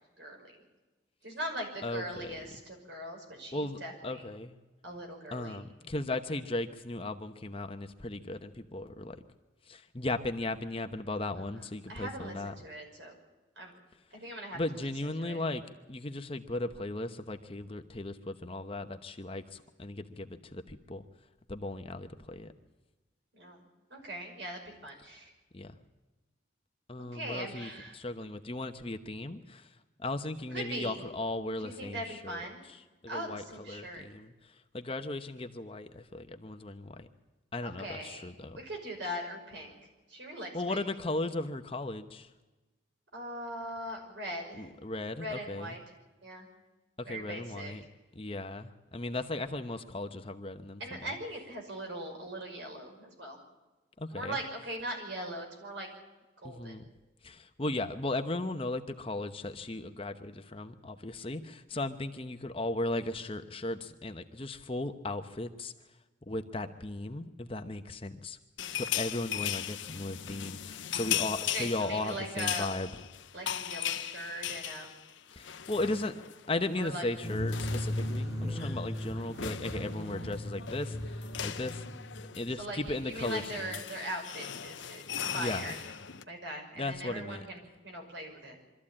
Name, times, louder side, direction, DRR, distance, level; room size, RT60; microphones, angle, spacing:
voice 1, 0.2-0.6 1.2-4.3 4.8-5.6 11.5-13.1 13.6-13.7 14.1-14.9 15.2-15.4 23.3-23.6 23.9-25.3 27.1-27.9 30.5-31.0 31.6-32.6 33.1-34.1 37.6-38.3 38.5-39.8 40.1-40.8 43.1-44.7 45.1-45.8 46.2-46.5 47.0-47.7 50.8-53.4 54.1-55.9 56.4-56.9 70.9-72.7 73.3-74.9 76.8-77.0 82.6-85.9 86.3-88.6, right 1 dB, 65° right, 2 dB, 5.8 m, -40 dB
voice 2, 1.8-2.4 3.5-4.6 5.3-9.2 9.7-12.5 14.5-15.6 15.9-21.0 21.5-22.5 25.5-25.7 26.9-29.7 30.0-32.4 33.0-37.1 37.5-38.6 40.5-42.3 44.6-45.8 47.0-47.8 48.2-51.0 54.0-54.4 56.4-56.8 57.2-65.7 66.3-68.4 68.7-72.9 75.3-76.1 76.5-81.8 82.4-83.8 85.3-85.7 86.8-87.5, left 2 dB, 30° left, 7 dB, 0.9 m, -36 dB
sound 1, 68.6-76.5 76.7-76.9 77.2-86.2, left 10 dB, 80° left, 0.9 m, -38 dB
sound 2, 77.2-82.6, left 1 dB, 20° right, 3.0 m, -37 dB
24.0 x 14.0 x 8.7 m, 1.1 s
head